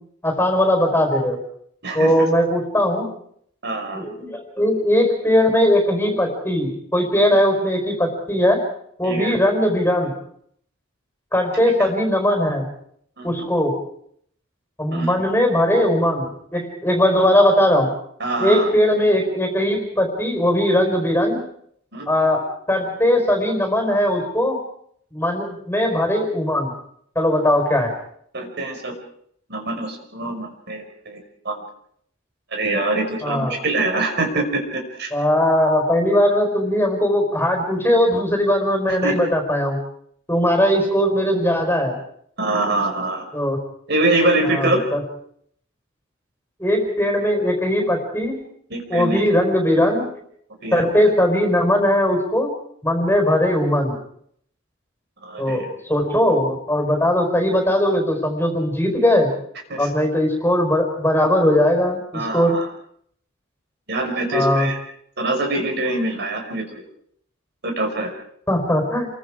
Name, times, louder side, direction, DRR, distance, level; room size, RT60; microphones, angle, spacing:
voice 1, 0.2-1.4 1.9-3.1 3.9-8.6 9.0-10.1 11.3-12.7 13.2-13.8 14.8-16.3 16.5-17.9 18.4-21.4 22.1-24.6 25.1-26.7 27.1-27.9 33.2-33.5 35.1-39.8 40.3-42.0 43.3-43.6 44.5-45.0 46.6-48.4 48.9-50.0 50.7-52.5 52.8-54.0 55.4-59.3 59.8-62.6 64.3-64.7 68.5-69.1, left 1 dB, 10° left, 4 dB, 4.8 m, -19 dB
voice 2, 1.8-2.1 3.6-4.0 9.0-9.3 11.8-11.9 13.2-13.3 14.9-15.1 18.2-18.7 21.9-22.1 28.3-28.9 29.5-31.2 31.4-31.6 32.5-35.1 39.0-39.2 42.4-43.2 43.9-44.8 48.7-49.2 50.6-50.8 55.2-55.7 59.7-59.9 62.1-62.6 63.9-64.8 65.2-66.6 67.6-68.1, right 2 dB, 55° right, 3 dB, 5.6 m, -24 dB
29.5 x 23.5 x 5.0 m, 0.67 s
head